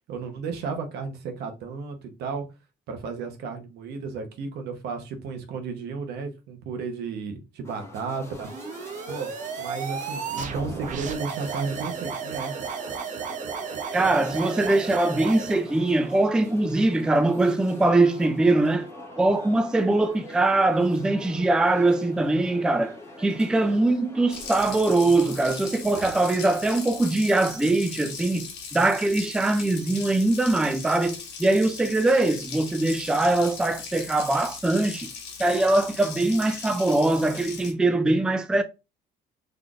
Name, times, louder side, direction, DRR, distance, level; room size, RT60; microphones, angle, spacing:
voice 1, 0.1-2.4 2.9-8.5 9.1-9.3 9.6-12.5, right 4 dB, 75° right, 0.9 m, -33 dB
sound 1, 7.6-25.5, left 1 dB, 15° left, 1.3 m, -44 dB
sound 2, 8.4-15.6, right 6 dB, 50° right, 0.6 m, -33 dB
voice 2, 13.9-18.9 19.2-35.1 35.4-38.6, right 2 dB, 5° right, 0.3 m, -22 dB
Water tap faucet, 24.3-37.7, left 5 dB, 85° left, 1.0 m, -39 dB
3.8 x 3.2 x 2.4 m
cardioid pair, 110°, 17 cm